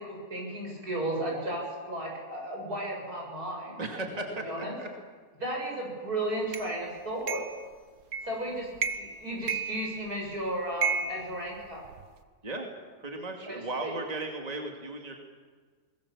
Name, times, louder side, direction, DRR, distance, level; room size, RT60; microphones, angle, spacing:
voice 1, 0.0-3.8 4.4-4.7 5.4-7.4 8.2-8.7 8.9-11.8 13.5-14.0, right 1 dB, 85° right, -1 dB, 8.0 m, -34 dB
voice 2, 3.8-4.9 12.4-12.7 13.0-15.2, right 2 dB, 25° right, 2 dB, 2.4 m, -36 dB
sound 1, 6.5-6.7 7.3-7.6 8.1-8.4 8.8-9.2 9.5-10.3 10.8-12.1, right 5 dB, 70° right, 1.6 m, -32 dB
22.0 x 20.5 x 7.3 m, 1.5 s
omnidirectional pair, 1.6 m